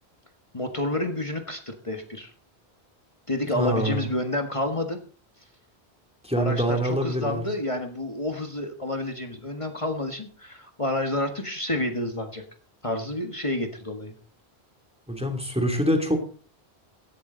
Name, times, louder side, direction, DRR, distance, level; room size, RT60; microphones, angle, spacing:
voice 1, 0.5-2.3 3.3-5.0 6.4-12.4 12.8-14.1, left 1 dB, 30° left, 4 dB, 1.6 m, -29 dB
voice 2, 3.5-4.1 6.2-7.4 15.1-16.2, equal, 5° right, 4 dB, 2.8 m, -25 dB
16.0 x 12.0 x 3.9 m, 0.41 s
omnidirectional pair, 1.1 m